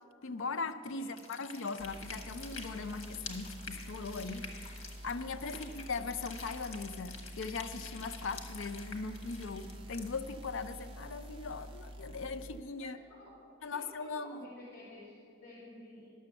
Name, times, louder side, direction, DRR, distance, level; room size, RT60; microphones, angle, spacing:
voice 1, 0.2-13.0 13.6-14.5, left 4 dB, 70° left, 11 dB, 0.5 m, -39 dB
sound 1, 1.1-10.1, left 4 dB, 85° left, 1.3 m, -48 dB
sound 2, 1.8-12.6, right 1 dB, 25° right, 0.7 m, -48 dB
voice 2, 13.7-16.1, left 1 dB, 15° left, -11 dB, 2.5 m, -52 dB
11.0 x 6.8 x 7.0 m, 2.6 s
head